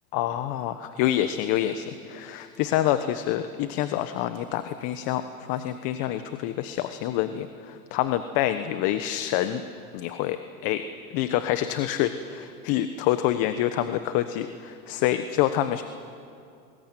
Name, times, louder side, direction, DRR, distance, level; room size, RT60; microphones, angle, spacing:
voice 1, 0.1-9.6 9.9-10.8 11.1-15.8, left 12 dB, 50° left, 10 dB, 1.3 m, -27 dB
29.5 x 21.0 x 9.2 m, 2.5 s
supercardioid pair, 130°, 45 cm